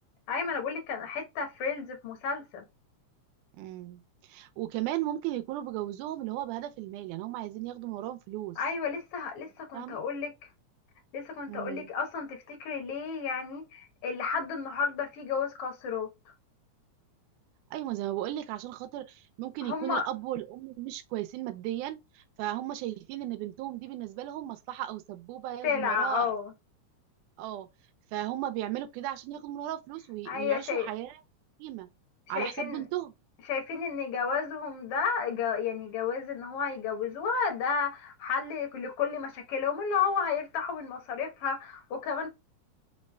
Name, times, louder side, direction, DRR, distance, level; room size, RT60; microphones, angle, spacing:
voice 1, 0.3-2.6 8.6-10.3 11.1-16.1 19.6-20.1 25.6-26.5 30.3-30.9 32.4-32.8 33.5-42.3, left 6 dB, 60° left, 1.8 m, -32 dB
voice 2, 3.5-8.6 9.7-10.0 11.5-11.9 17.7-26.3 27.4-27.7 28.1-31.2 31.6-31.9 32.3-33.1, right 13 dB, 85° right, 2.1 m, -36 dB
4.8 x 3.2 x 2.3 m
omnidirectional pair, 3.5 m